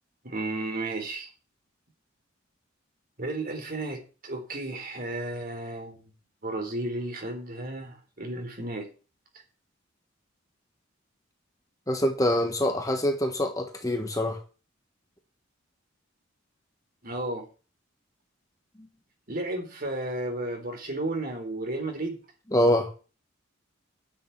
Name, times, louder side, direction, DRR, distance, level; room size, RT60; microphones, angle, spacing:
voice 1, 0.2-1.3 3.2-6.1 6.4-8.9 17.0-17.5 19.3-22.2, right 2 dB, 45° right, 3 dB, 3.9 m, -33 dB
voice 2, 11.9-14.4 22.5-22.9, left 1 dB, 15° left, 5 dB, 1.4 m, -25 dB
9.7 x 6.8 x 8.8 m, 0.36 s
head